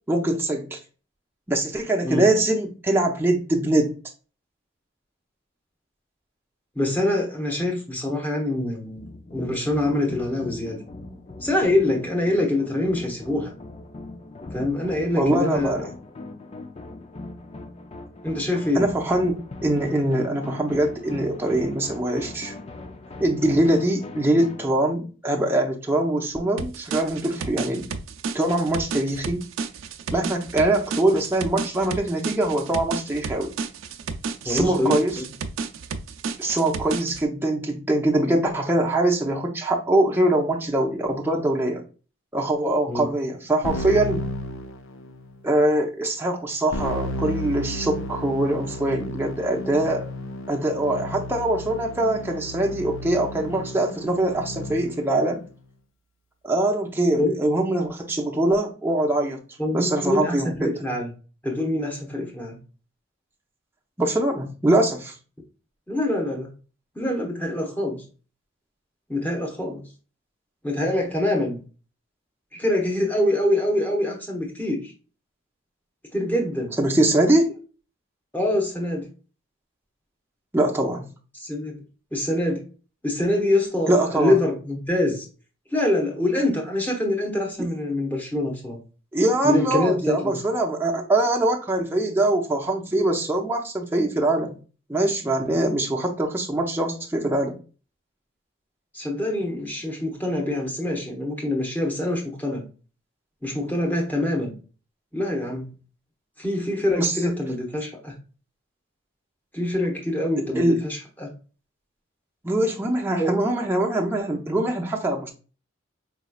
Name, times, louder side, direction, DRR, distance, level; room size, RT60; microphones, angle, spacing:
voice 1, 0.1-0.8 1.5-3.9 15.1-15.8 18.7-22.5 23.2-27.9 28.3-29.5 30.1-33.5 34.4-35.2 36.4-41.8 42.3-44.2 45.4-50.1 50.5-55.4 56.4-59.4 59.7-60.7 64.0-65.1 76.8-77.5 80.5-81.1 83.9-84.4 87.6-87.7 89.1-94.6 94.9-97.6 106.9-107.1 110.5-110.8 112.4-115.3, right 1 dB, 10° right, 0.6 m, -23 dB
voice 2, 6.7-9.0 9.3-10.8 11.4-13.5 14.5-15.9 18.2-18.8 34.4-35.2 42.9-43.1 57.2-57.4 59.6-61.1 61.4-62.6 65.9-66.5 66.9-68.0 69.1-69.8 70.6-71.6 72.5-74.9 76.1-76.8 78.3-79.0 81.3-81.8 82.1-82.6 83.0-85.2 85.7-88.8 89.4-90.4 98.9-102.7 103.4-104.5 105.1-105.7 106.4-108.2 109.5-111.3 113.2-113.4, left 1 dB, 10° left, 1.0 m, -25 dB
sound 1, 9.0-24.6, left 2 dB, 30° left, 0.4 m, -40 dB
sound 2, 26.6-37.2, right 4 dB, 85° right, 0.5 m, -32 dB
Keyboard (musical), 43.6-45.3 46.7-55.1, left 1 dB, 85° left, 0.6 m, -33 dB
4.9 x 3.1 x 2.3 m
head